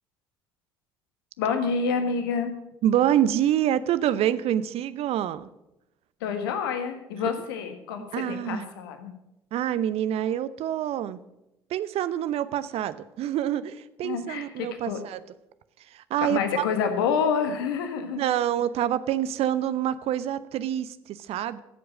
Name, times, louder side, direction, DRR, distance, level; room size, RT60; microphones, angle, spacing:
voice 1, 1.4-2.5 6.2-9.1 14.0-15.0 16.2-18.2, left 6 dB, 75° left, 7 dB, 1.5 m, -28 dB
voice 2, 2.8-5.5 7.1-7.3 8.1-8.7 9.5-11.2 11.7-15.2 15.9-16.6 18.1-21.6, right 11 dB, 55° right, 15 dB, 0.7 m, -26 dB
14.0 x 7.9 x 7.4 m, 0.91 s
figure-of-eight pair, 50°, 12 cm